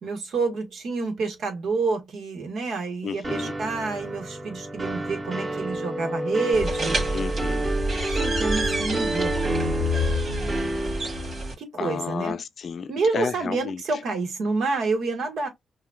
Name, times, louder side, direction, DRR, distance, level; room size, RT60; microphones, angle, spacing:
voice 1, 0.0-7.0 7.9-9.4 11.6-12.4 12.9-15.5, right 4 dB, 70° right, 1.4 m, -28 dB
voice 2, 3.0-3.5 7.1-7.8 11.8-13.8, left 6 dB, 60° left, 0.5 m, -32 dB
sound 1, 3.2-11.5, right 2 dB, 35° right, 2.2 m, -30 dB
sound 2, 4.7-7.7, left 2 dB, 20° left, 0.8 m, -34 dB
sound 3, 6.5-11.5, equal, 55° right, 2.1 m, -27 dB
5.7 x 2.3 x 2.3 m
supercardioid pair, 45°, 0 cm